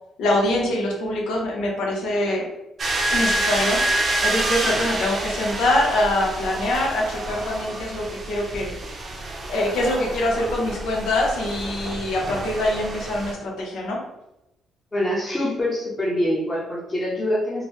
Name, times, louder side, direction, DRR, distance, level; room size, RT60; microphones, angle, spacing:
voice 1, 0.2-2.5 3.1-3.9 4.2-8.7 9.5-14.0, left 1 dB, 80° left, -1 dB, 0.8 m, -24 dB
sound 1, 2.8-13.3, right 2 dB, 45° right, 0.7 m, -28 dB
voice 2, 14.9-17.6, left 1 dB, 25° left, -6 dB, 0.9 m, -24 dB
3.6 x 2.1 x 3.1 m, 0.91 s
cardioid pair, 90°, 0 cm